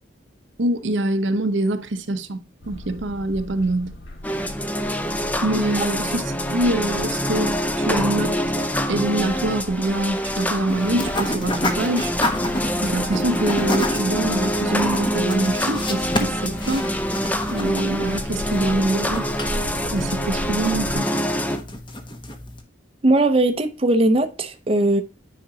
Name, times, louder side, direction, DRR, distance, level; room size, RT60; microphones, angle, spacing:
voice 1, 0.6-4.0 5.4-8.6 8.9-12.1 12.8-16.9 17.5-19.3 19.9-21.1, right 1 dB, 80° right, 0.8 m, -25 dB
sound 1, 2.6-20.9, left 1 dB, 85° left, 2.1 m, -37 dB
sound 2, 4.2-21.6, equal, 10° left, 0.6 m, -25 dB
sound 3, 10.7-22.6, left 1 dB, 25° left, 1.0 m, -30 dB
voice 2, 23.0-25.0, right 2 dB, 30° right, 0.7 m, -19 dB
9.5 x 5.1 x 2.8 m
head